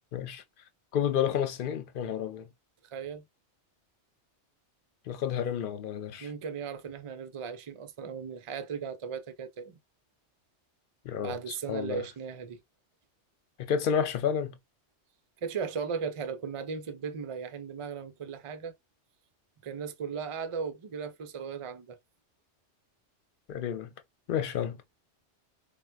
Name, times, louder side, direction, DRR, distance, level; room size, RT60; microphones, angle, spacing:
voice 1, 0.1-0.4 0.9-2.5 5.1-6.3 11.0-12.0 13.6-14.6 23.5-23.9 24.3-24.8, left 8 dB, 55° left, 0.7 m, -30 dB
voice 2, 2.8-3.2 6.2-9.8 11.2-12.6 15.4-18.7 19.6-22.0, right 6 dB, 45° right, 0.4 m, -37 dB
4.3 x 2.2 x 2.3 m
omnidirectional pair, 1.2 m